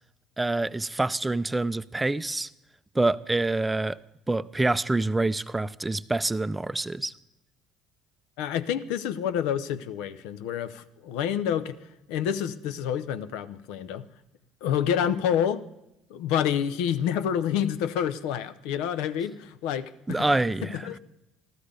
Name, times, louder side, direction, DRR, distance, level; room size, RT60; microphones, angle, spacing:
voice 1, 0.4-2.5 2.9-4.0 4.3-7.1 20.1-20.8, right 2 dB, 15° right, 0.5 m, -26 dB
voice 2, 8.4-11.8 12.1-14.1 14.6-15.7 16.1-20.3 20.6-21.0, left 9 dB, 75° left, 0.6 m, -28 dB
13.5 x 13.0 x 5.1 m
supercardioid pair, 75°, 0 cm